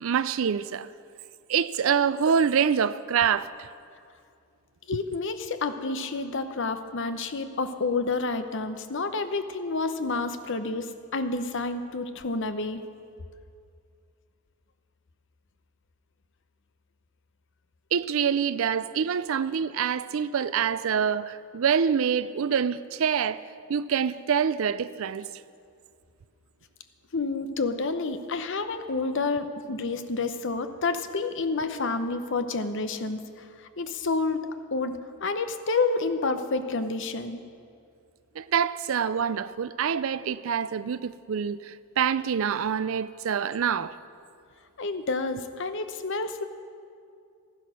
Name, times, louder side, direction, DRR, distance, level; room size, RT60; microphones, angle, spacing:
voice 1, 0.0-0.9 1.5-3.7 17.9-23.4 23.7-25.3 38.4-44.0, right 7 dB, 65° right, 0.4 m, -26 dB
voice 2, 4.9-12.8 27.1-33.2 33.6-37.4 44.8-46.4, left 3 dB, 55° left, 0.8 m, -29 dB
13.5 x 10.5 x 6.3 m
head